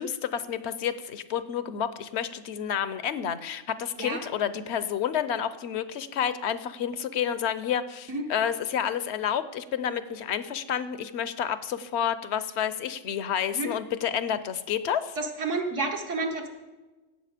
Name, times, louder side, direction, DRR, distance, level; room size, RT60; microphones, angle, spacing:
voice 1, 0.0-15.2, left 8 dB, 65° left, 13 dB, 0.9 m, -30 dB
voice 2, 15.2-16.5, right 3 dB, 70° right, 2 dB, 1.8 m, -30 dB
16.5 x 7.8 x 5.0 m, 1.2 s
omnidirectional pair, 1.3 m